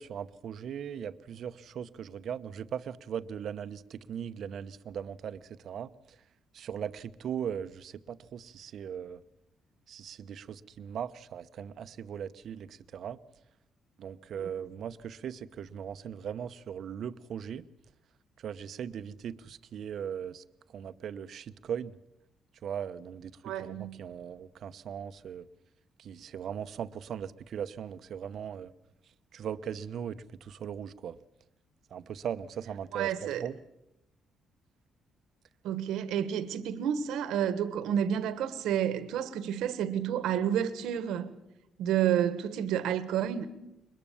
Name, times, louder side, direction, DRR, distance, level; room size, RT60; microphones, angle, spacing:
voice 1, 0.0-6.2 6.5-9.2 9.9-13.2 14.0-17.7 18.4-20.4 20.7-22.0 22.6-23.3 23.6-25.5 26.0-28.7 29.3-31.2 31.9-33.6, right 8 dB, 65° right, 0.9 m, -39 dB
voice 2, 23.4-24.0 32.9-33.5 35.6-41.4 41.8-43.5, right 9 dB, 90° right, 1.4 m, -30 dB
22.5 x 21.0 x 7.1 m
cardioid pair, 90°, 0 cm